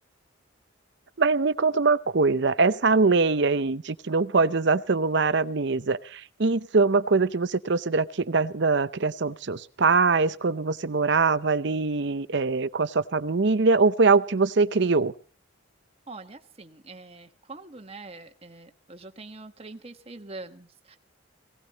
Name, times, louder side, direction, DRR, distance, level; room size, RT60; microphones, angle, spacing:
voice 1, 1.2-15.1, right 4 dB, 60° right, 15 dB, 0.7 m, -23 dB
voice 2, 16.1-21.0, right 3 dB, 30° right, 5 dB, 1.3 m, -44 dB
19.0 x 18.0 x 4.1 m, 0.39 s
head